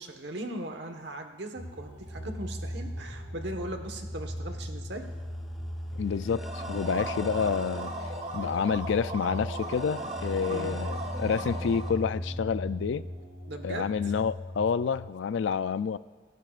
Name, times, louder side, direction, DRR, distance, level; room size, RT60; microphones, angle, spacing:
voice 1, 0.0-5.0 10.5-10.8 13.5-14.0, right 1 dB, 60° right, 5 dB, 1.3 m, -38 dB
sound 1, 1.6-15.0, equal, 20° right, 2.7 m, -38 dB
sound 2, 5.0-11.9, equal, ahead, 1.0 m, -46 dB
voice 2, 5.9-7.9 8.3-13.0 13.6-16.0, left 6 dB, 75° left, 16 dB, 0.4 m, -29 dB
sound 3, 6.3-12.0, right 2 dB, 35° right, 2.4 m, -38 dB
26.0 x 12.0 x 2.5 m, 1.4 s
head